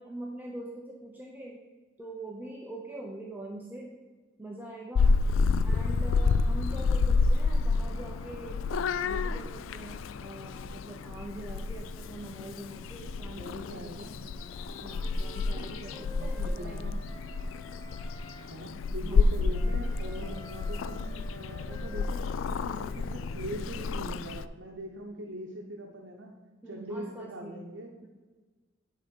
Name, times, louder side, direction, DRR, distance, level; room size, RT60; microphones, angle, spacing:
voice 1, 0.0-1.6 2.0-4.0 4.4-5.2 5.6-8.6 9.0-14.5 14.8-17.0 19.0-19.3 20.2-20.5 26.6-27.7 28.0-28.1, right 1 dB, 10° right, -2 dB, 0.7 m, -43 dB
Purr / Meow, 4.9-24.4, left 4 dB, 85° left, 0.3 m, -29 dB
voice 2, 13.3-14.2 15.7-17.0 18.5-26.3 26.6-27.9, right 1 dB, 65° right, 1 dB, 0.8 m, -42 dB
Wind instrument woodwind instrument, 14.4-18.5 19.5-23.4, left 1 dB, 15° left, 0.9 m, -50 dB
9.8 x 3.8 x 5.3 m, 1.3 s
head